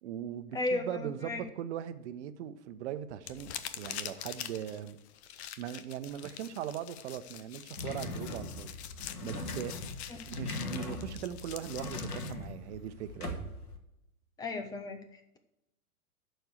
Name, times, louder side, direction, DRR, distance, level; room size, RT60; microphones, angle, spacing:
voice 1, 0.0-5.0 5.4-8.7 9.2-9.8 10.3-13.4, right 10 dB, 50° right, 11 dB, 0.9 m, -40 dB
voice 2, 0.5-1.4 10.1-10.2 14.4-15.0, left 2 dB, 10° left, 8 dB, 0.4 m, -34 dB
sound 1, 3.2-12.3, left 10 dB, 45° left, 0.8 m, -45 dB
sound 2, 7.8-13.8, left 2 dB, 80° left, 2.0 m, -40 dB
11.5 x 4.5 x 8.0 m, 0.88 s
hypercardioid pair, 110°, 44 cm